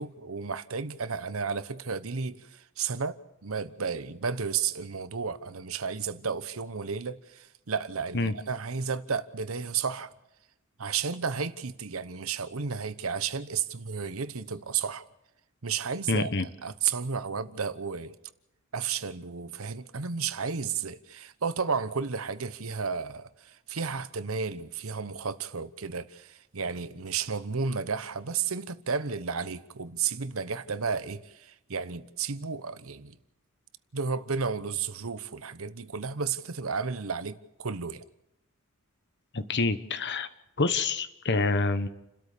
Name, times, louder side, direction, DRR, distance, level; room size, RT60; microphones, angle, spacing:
voice 1, 0.0-10.1 10.8-15.0 15.6-16.3 16.6-18.1 18.7-33.1 33.9-38.0, right 5 dB, 75° right, 1.0 m, -32 dB
voice 2, 16.1-16.4 39.3-40.3 40.6-41.9, left 3 dB, 55° left, 1.3 m, -27 dB
30.0 x 13.0 x 6.8 m
head